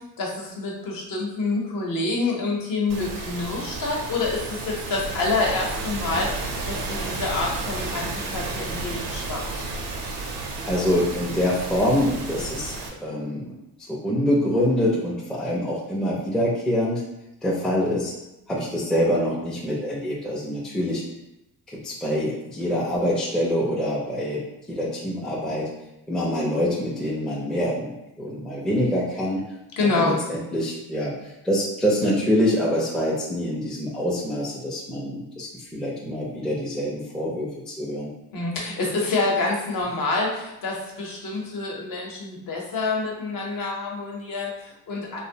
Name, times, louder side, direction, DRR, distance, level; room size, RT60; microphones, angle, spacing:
voice 1, 0.2-9.7 29.8-30.2 38.3-45.2, left 3 dB, 60° left, -1 dB, 0.8 m, -27 dB
sound 1, 2.9-12.9, right 3 dB, 90° right, 0.6 m, -32 dB
voice 2, 10.6-12.7 13.0-13.5 13.9-17.0 17.4-18.1 18.5-21.0 21.7-24.4 24.7-25.7 26.1-29.4 29.9-38.1, equal, ahead, -3 dB, 0.4 m, -25 dB
2.5 x 2.0 x 2.7 m, 0.92 s
cardioid pair, 95°, 38 cm